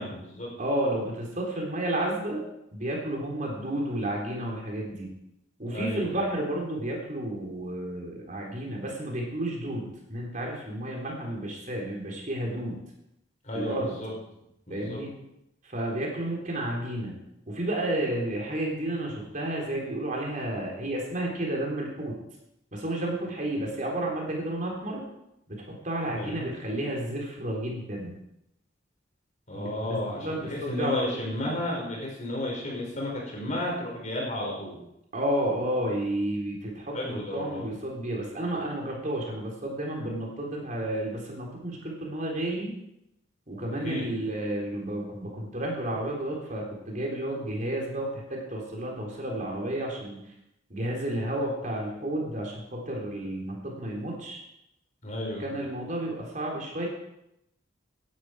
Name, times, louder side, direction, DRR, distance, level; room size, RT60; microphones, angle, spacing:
voice 1, 0.0-0.5 5.7-6.1 13.4-14.1 14.7-15.0 26.1-26.5 29.5-34.8 36.9-37.6 43.7-44.2 55.0-55.5, left 1 dB, 40° left, -2 dB, 5.5 m, -33 dB
voice 2, 0.6-2.4 2.7-5.1 5.6-12.8 13.5-14.0 14.7-15.1 15.6-17.2 17.5-22.2 22.7-25.0 25.5-28.1 29.5-29.6 29.9-31.0 35.1-42.7 43.5-50.2 50.7-54.4 55.4-56.9, right 1 dB, 40° right, -1 dB, 3.7 m, -31 dB
16.5 x 11.0 x 4.9 m, 0.83 s
head